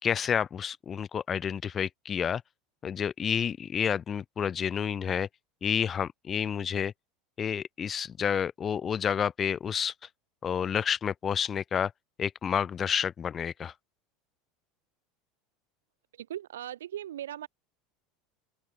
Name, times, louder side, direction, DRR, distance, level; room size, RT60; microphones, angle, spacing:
voice 1, 0.0-2.4 2.8-5.3 5.6-6.9 7.4-9.9 10.4-11.9 12.2-13.7, left 8 dB, 30° left, 2.2 m, -29 dB
voice 2, 16.2-17.5, right 11 dB, 70° right, 2.7 m, -38 dB
open air
figure-of-eight pair, 75°, 0 cm